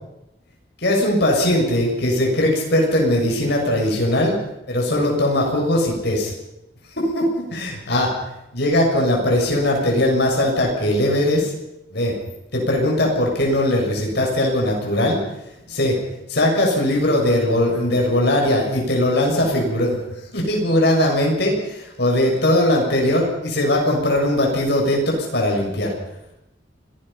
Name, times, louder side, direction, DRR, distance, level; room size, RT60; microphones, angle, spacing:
voice 1, 0.8-4.4 4.7-6.3 7.0-8.1 8.5-11.5 11.9-12.1 12.5-15.2 15.7-16.0 16.3-20.0 20.3-25.9, left 1 dB, 65° left, 0 dB, 6.8 m, -19 dB
26.5 x 18.5 x 5.8 m, 0.88 s
head